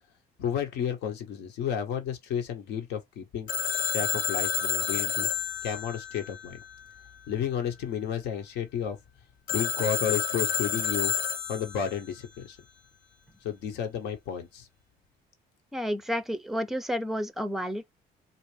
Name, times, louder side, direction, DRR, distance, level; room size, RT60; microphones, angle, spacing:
voice 1, 0.4-3.5 3.9-5.3 5.6-6.6 7.3-9.0 9.5-11.1 11.5-12.6 13.4-14.7, left 8 dB, 80° left, 1.1 m, -32 dB
Telephone, 3.5-7.1 9.5-12.0, left 7 dB, 55° left, 1.0 m, -30 dB
voice 2, 15.7-17.9, equal, ahead, 0.5 m, -31 dB
4.2 x 2.5 x 3.1 m
cardioid pair, 110°, 17 cm